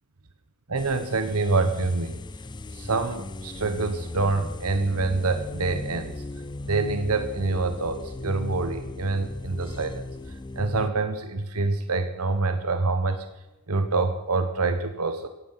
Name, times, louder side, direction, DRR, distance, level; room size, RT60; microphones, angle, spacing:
voice 1, 0.7-2.2 2.7-6.2 6.7-13.2 13.7-15.3, right 3 dB, 80° right, 8 dB, 1.3 m, -26 dB
sound 1, 0.8-10.9, left 2 dB, 20° left, 0.5 m, -37 dB
16.5 x 15.0 x 5.8 m, 0.98 s
head